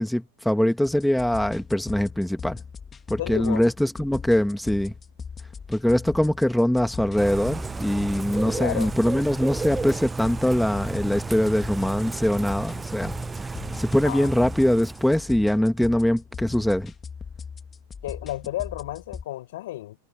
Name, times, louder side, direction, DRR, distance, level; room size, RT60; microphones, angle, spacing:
voice 1, 0.0-2.6 3.1-4.9 5.7-13.1 13.4-16.9, left 1 dB, ahead, 1.7 m, -23 dB
sound 1, 0.8-19.2, left 6 dB, 20° left, 2.5 m, -40 dB
voice 2, 3.2-3.6 8.5-8.9 14.0-14.3 18.0-20.0, left 15 dB, 65° left, 7.2 m, -32 dB
Bird / Rain, 7.2-15.3, right 4 dB, 15° right, 0.7 m, -33 dB
hypercardioid pair, 95°, 0 cm